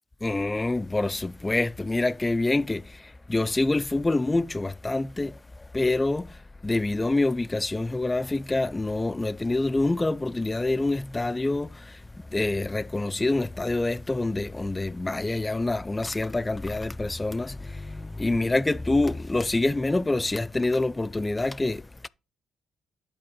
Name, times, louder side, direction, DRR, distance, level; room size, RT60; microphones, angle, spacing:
voice 1, 0.2-12.0 12.3-22.1, left 2 dB, 15° left, 0.3 m, -26 dB
11.0 x 4.3 x 4.6 m
cardioid pair, 90°, 0 cm